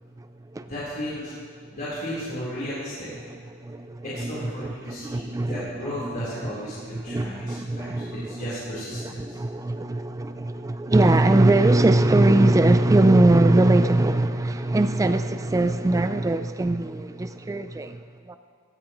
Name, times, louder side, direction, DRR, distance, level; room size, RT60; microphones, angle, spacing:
voice 1, 0.7-1.3 1.7-3.1 4.1-7.9 8.2-9.4, equal, 45° left, 3.8 m, -34 dB
voice 2, 3.5-8.5 8.9-18.4, right 2 dB, 15° right, 0.3 m, -22 dB
17.5 x 13.5 x 3.0 m
head